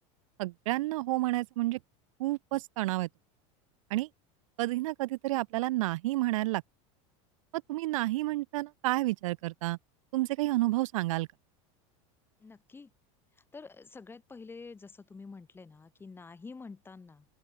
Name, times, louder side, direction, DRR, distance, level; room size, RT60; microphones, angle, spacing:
voice 1, 0.4-1.8 2.2-3.1 3.9-4.1 4.6-6.6 7.7-9.8 10.1-11.3, right 18 dB, 85° right, 2.4 m, -30 dB
voice 2, 12.4-12.9 13.5-17.3, left 4 dB, 15° left, 4.9 m, -48 dB
open air
supercardioid pair, 140°, 17 cm